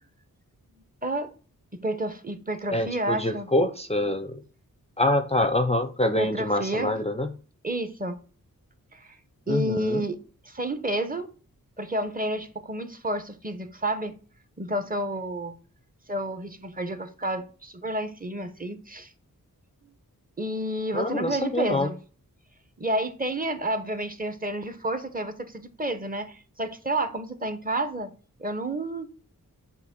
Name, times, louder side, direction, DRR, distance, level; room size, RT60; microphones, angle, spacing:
voice 1, 1.8-3.5 6.2-6.9 7.6-8.2 8.9-9.1 9.5-10.2 10.4-11.3 11.8-14.2 14.6-15.6 16.1-19.1 20.4-21.9 22.8-28.1 28.4-29.1, right 1 dB, 25° right, 0.9 m, -30 dB
voice 2, 2.7-4.4 5.0-7.3 9.5-10.0 20.9-21.9, left 1 dB, 20° left, 0.5 m, -25 dB
6.7 x 2.7 x 5.3 m
wide cardioid pair, 55°, 35 cm